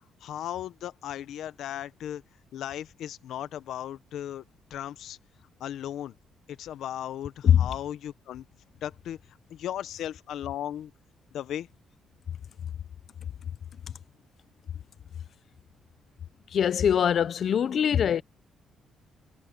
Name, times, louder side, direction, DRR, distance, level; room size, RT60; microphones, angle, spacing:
voice 1, 0.2-2.2 2.5-4.4 4.7-5.2 5.6-6.1 6.5-8.4 8.8-9.2 9.5-10.9 11.3-11.7, left 11 dB, 75° left, 1.1 m, -36 dB
voice 2, 16.5-18.2, left 8 dB, 60° left, 0.7 m, -22 dB
cardioid pair, 90°, 0 cm